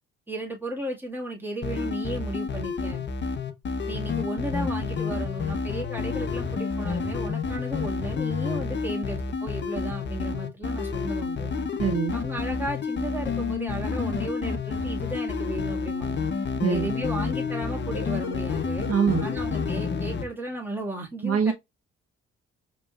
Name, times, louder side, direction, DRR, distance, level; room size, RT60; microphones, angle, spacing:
voice 1, 0.3-3.0 3.9-11.5 12.1-16.3 16.7-18.9 19.2-21.5, right 1 dB, 5° right, 1.8 m, -35 dB
sound 1, 1.6-20.2, left 5 dB, 35° left, 0.8 m, -29 dB
voice 2, 11.8-12.2 16.6-16.9 18.9-19.3 21.2-21.5, right 7 dB, 50° right, 0.8 m, -24 dB
5.1 x 3.1 x 2.4 m
supercardioid pair, 55°, 30 cm